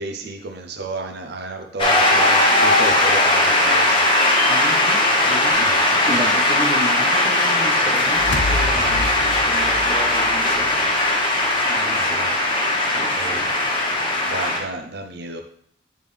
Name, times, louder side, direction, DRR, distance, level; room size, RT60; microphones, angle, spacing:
voice 1, 0.0-4.1 5.6-6.4 11.8-12.3 13.1-13.5 14.2-15.4, right 2 dB, 60° right, 4 dB, 0.6 m, -32 dB
Shout / Cheering / Applause, 1.8-14.6, left 1 dB, 30° left, 1.2 m, -18 dB
voice 2, 4.5-5.6 6.1-10.7 11.6-12.2 12.8-13.5, equal, 15° right, -2 dB, 1.1 m, -33 dB
sound 1, 7.9-11.1, left 2 dB, 70° left, 0.8 m, -30 dB
8.7 x 3.6 x 3.4 m, 0.66 s
head